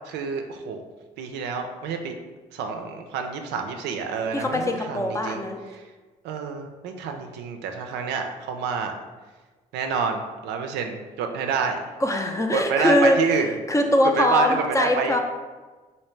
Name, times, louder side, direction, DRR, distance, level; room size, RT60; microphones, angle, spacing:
voice 1, 0.1-0.8 1.2-2.1 2.5-5.4 5.7-5.8 6.2-8.9 9.7-11.9 12.5-13.5 14.2-15.2, right 5 dB, 75° right, 5 dB, 0.4 m, -28 dB
voice 2, 4.3-5.6 12.0-13.2 13.7-15.2, left 1 dB, 15° left, 3 dB, 0.5 m, -22 dB
3.2 x 2.7 x 3.1 m, 1.3 s
hypercardioid pair, 55°, 18 cm